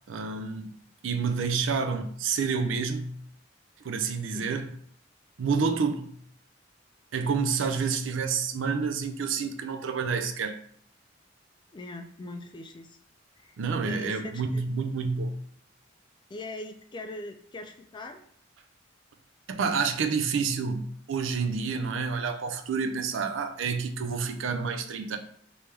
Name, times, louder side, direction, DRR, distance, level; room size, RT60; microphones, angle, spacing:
voice 1, 0.1-0.7 1.0-3.2 3.8-4.7 5.4-6.2 7.1-10.6 13.6-15.3 19.5-25.2, right 5 dB, 85° right, 0.5 m, -29 dB
voice 2, 11.7-13.0 13.4-14.6 16.3-18.2 23.2-23.3, left 2 dB, 25° left, 0.3 m, -41 dB
3.3 x 3.0 x 3.3 m
head